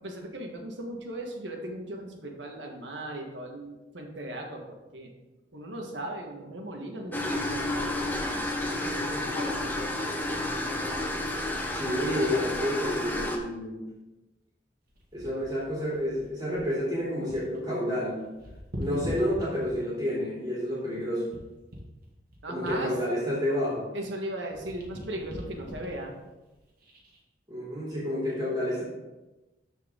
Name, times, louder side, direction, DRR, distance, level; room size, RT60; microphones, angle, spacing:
voice 1, 0.0-5.1 5.5-8.2 8.7-9.7 18.8-19.1 22.4-23.0 23.9-26.1, right 1 dB, 85° right, 1 dB, 1.5 m, -38 dB
sound 1, 7.1-13.4, left 1 dB, 10° left, 0.8 m, -31 dB
voice 2, 11.7-13.8 15.1-18.2 18.8-21.2 22.5-23.9 27.5-28.8, equal, 20° right, -7 dB, 2.8 m, -29 dB
sound 2, 14.9-17.6 17.9-20.0 20.6-24.1 24.4-27.2 27.8-28.0, equal, 50° right, 1.8 m, -44 dB
13.0 x 4.8 x 3.7 m, 1.1 s
head